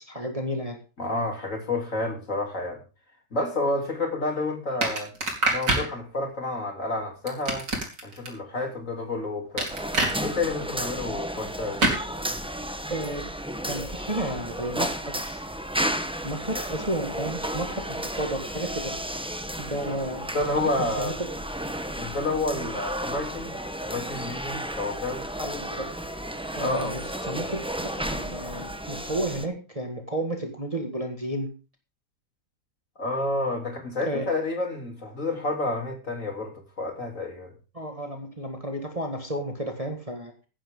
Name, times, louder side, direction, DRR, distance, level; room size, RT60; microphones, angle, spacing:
voice 1, 0.0-0.8 5.8-6.0 12.9-13.3 13.6-15.4 16.2-18.9 19.6-20.2 20.6-21.3 22.5-22.7 25.4-25.9 26.5-31.5 34.0-34.3 37.7-40.3, right 1 dB, 20° right, 4 dB, 1.8 m, -32 dB
voice 2, 1.0-2.8 3.3-5.1 5.5-7.7 8.0-9.7 10.2-11.8 20.3-21.2 22.0-25.2 26.6-27.0 33.0-37.5, left 2 dB, 45° left, 2 dB, 3.7 m, -29 dB
sound 1, 4.8-5.9 7.3-8.3 9.6-10.2 11.8-12.0, right 2 dB, 80° right, 4.3 m, -25 dB
sound 2, 9.7-29.5, equal, 5° right, 0.7 m, -33 dB
16.0 x 10.5 x 3.8 m, 0.33 s
omnidirectional pair, 1.9 m